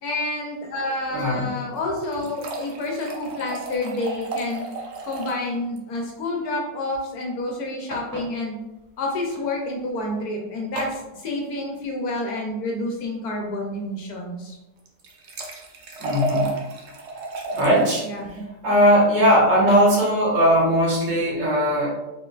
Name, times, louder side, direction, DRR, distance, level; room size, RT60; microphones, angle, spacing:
voice 1, 0.0-4.7 5.0-8.6 9.0-14.6 18.0-18.4, left 2 dB, 65° left, 0 dB, 1.1 m, -29 dB
voice 2, 1.1-1.5 16.0-16.5 17.5-18.1 18.6-21.9, equal, 80° right, -6 dB, 2.1 m, -19 dB
sound 1, 1.7-5.5 5.8-5.9 6.1-6.2 7.9-8.3 9.2-9.4 10.8-11.0 14.8-17.9 19.4-19.8, right 3 dB, 60° right, 0.7 m, -31 dB
4.1 x 3.8 x 2.4 m, 1.0 s
omnidirectional pair, 1.9 m